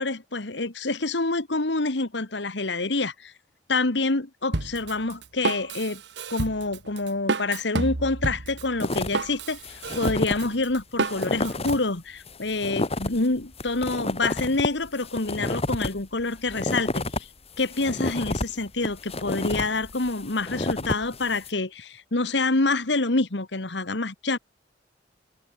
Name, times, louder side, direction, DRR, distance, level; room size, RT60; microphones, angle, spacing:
voice 1, 0.0-3.3 3.7-6.0 6.3-17.3 17.6-24.4, left 3 dB, 70° left, 1.7 m, -27 dB
Drum kit, 4.5-11.7, right 3 dB, 65° right, 1.3 m, -30 dB
sound 1, 8.8-9.3 9.6-10.5 10.8-10.9 11.1-11.8 12.3-17.2 17.6-21.5, left 2 dB, 35° left, 2.2 m, -30 dB
head